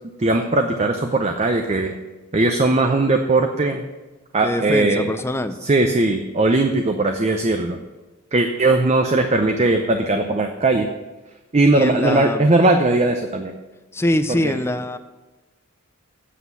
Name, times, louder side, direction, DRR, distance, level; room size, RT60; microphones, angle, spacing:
voice 1, 0.2-2.0 2.3-3.8 4.3-5.0 5.6-7.8 8.3-10.9 11.5-13.5 14.4-14.6, right 2 dB, 30° right, 5 dB, 0.6 m, -19 dB
voice 2, 4.4-5.6 11.7-12.5 13.9-15.0, left 1 dB, 10° left, 9 dB, 0.5 m, -23 dB
8.4 x 7.7 x 7.0 m, 1.1 s
head